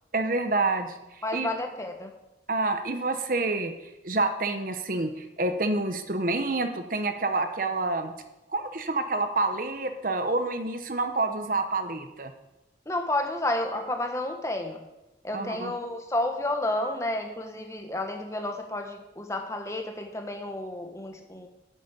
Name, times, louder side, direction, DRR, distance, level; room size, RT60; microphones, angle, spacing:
voice 1, 0.1-0.9 1.3-1.5 2.5-3.7 4.0-8.1 8.5-12.3 15.3-15.7, right 2 dB, 50° right, 8 dB, 1.0 m, -28 dB
voice 2, 1.2-2.1 12.8-14.8 15.2-21.5, left 1 dB, 15° left, 4 dB, 1.4 m, -31 dB
9.3 x 8.3 x 8.3 m, 0.98 s
head